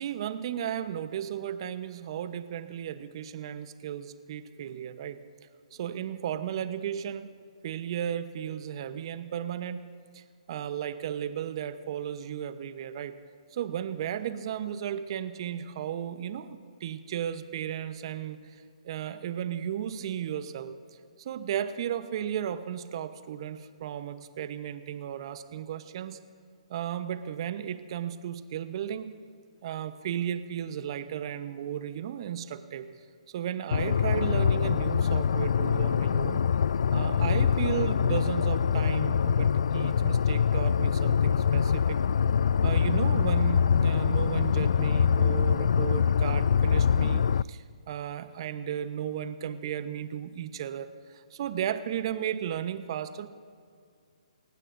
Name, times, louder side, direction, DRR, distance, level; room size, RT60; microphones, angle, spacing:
voice 1, 0.0-5.2 5.7-7.4 7.6-9.9 10.1-13.1 13.5-20.7 21.2-26.2 26.7-29.1 29.6-32.8 33.3-36.5 36.9-42.0 42.6-53.3, right 9 dB, 45° right, 11 dB, 1.0 m, -34 dB
sound 1, 33.7-47.4, left 7 dB, 65° left, 0.3 m, -24 dB
29.0 x 15.0 x 2.7 m, 2.2 s
figure-of-eight pair, 135°, 4 cm